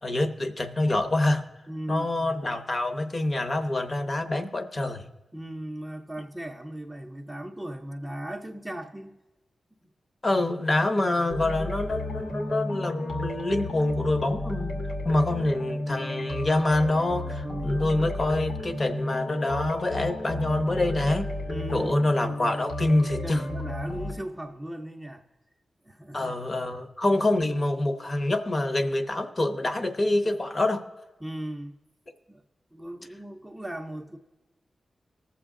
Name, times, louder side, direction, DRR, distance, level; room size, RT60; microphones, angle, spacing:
voice 1, 0.0-1.4 1.9-5.0 10.2-14.7 15.0-21.3 21.7-23.4 26.1-30.8, left 2 dB, 30° left, 0.8 m, -26 dB
voice 2, 1.7-2.3 5.3-9.2 9.8-9.9 17.4-17.9 21.5-22.0 23.2-25.2 25.8-26.3 31.2-31.8 32.3-32.4 32.7-34.2, right 1 dB, 5° right, 0.6 m, -37 dB
sound 1, 11.3-24.1, left 1 dB, 85° left, 2.1 m, -33 dB
20.0 x 7.2 x 3.7 m
wide cardioid pair, 170°, 0 cm